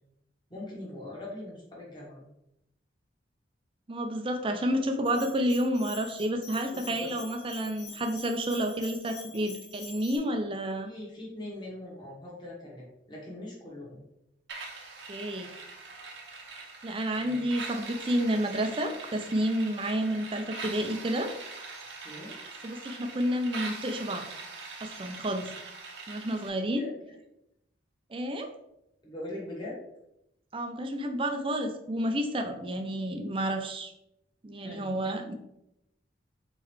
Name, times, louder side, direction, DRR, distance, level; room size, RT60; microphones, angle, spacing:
voice 1, 0.5-2.2 6.7-7.1 10.8-14.0 17.2-17.4 18.7-18.8 22.0-22.3 26.7-27.2 29.0-29.7 34.6-34.9, left 1 dB, 25° left, -5 dB, 1.4 m, -42 dB
voice 2, 3.9-10.9 15.1-15.5 16.8-21.3 22.6-24.3 24.8-25.5 26.1-26.8 28.1-28.5 30.5-33.9 34.4-35.4, right 1 dB, 30° right, 6 dB, 0.5 m, -30 dB
Bell, 5.0-10.2, left 4 dB, 60° left, 1.0 m, -46 dB
sound 1, 14.5-26.5, right 3 dB, 75° right, 0.9 m, -42 dB
4.1 x 3.9 x 3.2 m, 0.82 s
head